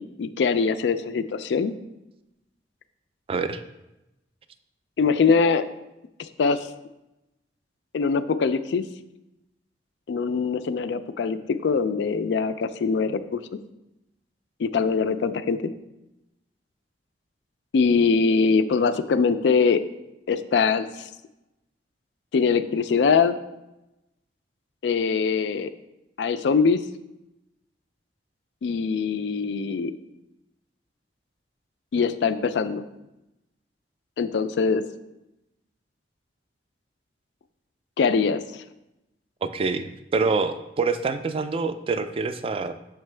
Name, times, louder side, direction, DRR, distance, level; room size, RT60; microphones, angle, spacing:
voice 1, 0.0-1.7 5.0-5.7 6.2-6.7 7.9-8.8 10.1-13.4 14.6-15.6 17.7-19.8 20.3-21.1 22.3-23.4 24.8-25.7 26.2-26.8 28.6-29.9 31.9-32.9 34.2-34.8 38.0-38.6, left 5 dB, 80° left, 12 dB, 0.3 m, -22 dB
voice 2, 3.3-3.6 39.4-42.7, right 4 dB, 30° right, 10 dB, 0.3 m, -26 dB
6.6 x 4.5 x 3.2 m, 0.95 s
head